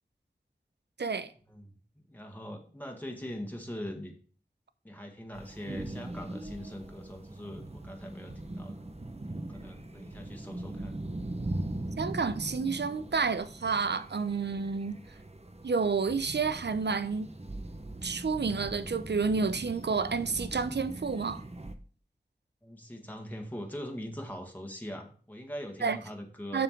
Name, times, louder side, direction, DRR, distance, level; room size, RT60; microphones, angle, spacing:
voice 1, 1.0-1.3 12.0-15.0 15.6-17.3 18.0-21.4 25.8-26.0 26.5-26.6, right 5 dB, 80° right, 0.7 m, -30 dB
voice 2, 2.1-4.1 4.8-8.8 9.3-11.0 22.6-26.6, equal, 10° left, 1.7 m, -42 dB
sound 1, 5.3-21.7, right 1 dB, 35° right, 1.0 m, -41 dB
7.5 x 6.0 x 4.5 m
wide cardioid pair, 45°, 17 cm